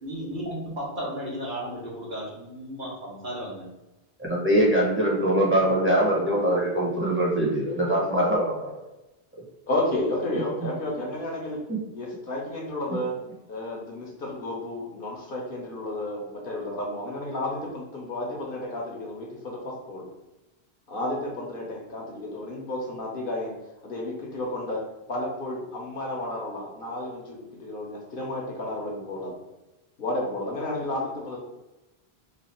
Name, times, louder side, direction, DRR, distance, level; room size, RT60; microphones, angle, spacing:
voice 1, 0.0-3.7, equal, 55° right, -5 dB, 1.2 m, -34 dB
voice 2, 4.2-8.5 11.7-11.8, right 1 dB, 10° right, -5 dB, 0.9 m, -22 dB
voice 3, 9.7-11.6 11.9-13.1 13.5-20.0 20.9-23.5 23.8-29.4 30.0-31.4, left 1 dB, 60° left, -2 dB, 1.0 m, -32 dB
3.1 x 2.4 x 4.3 m, 1.0 s
omnidirectional pair, 1.1 m